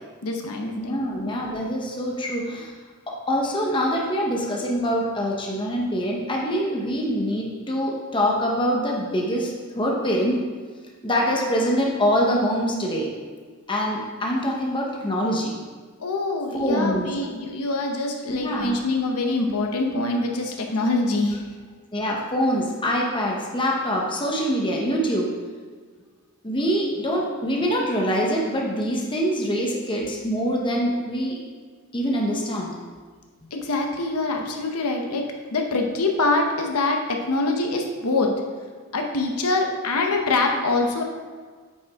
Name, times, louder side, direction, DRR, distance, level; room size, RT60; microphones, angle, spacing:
voice 1, 0.2-1.0 16.0-21.4 33.5-38.3 38.9-41.0, left 2 dB, 90° left, 2 dB, 1.0 m, -24 dB
voice 2, 0.7-2.7 3.1-10.4 11.0-13.1 13.7-15.6 16.5-17.1 18.3-18.8 21.9-25.3 26.4-31.4 31.9-32.7, equal, 20° left, -2 dB, 1.0 m, -24 dB
9.1 x 6.0 x 3.6 m, 1.5 s
head